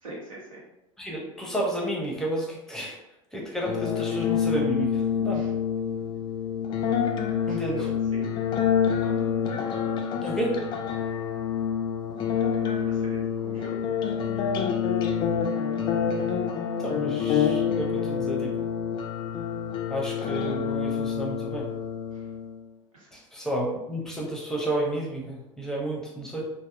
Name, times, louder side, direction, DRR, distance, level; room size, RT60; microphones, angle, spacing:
voice 1, 0.0-0.6 5.3-5.5 7.5-8.4 12.7-13.8 22.1-22.2 22.9-23.1, right 2 dB, 75° right, -4 dB, 1.0 m, -43 dB
voice 2, 1.0-3.0 3.3-5.4 7.5-7.9 10.2-10.6 16.8-18.5 19.9-21.7 23.1-26.5, right 1 dB, 5° left, -2 dB, 0.7 m, -31 dB
sound 1, 3.6-22.6, left 7 dB, 25° left, 0.4 m, -27 dB
3.4 x 2.0 x 2.5 m, 0.89 s
figure-of-eight pair, 75°, 17 cm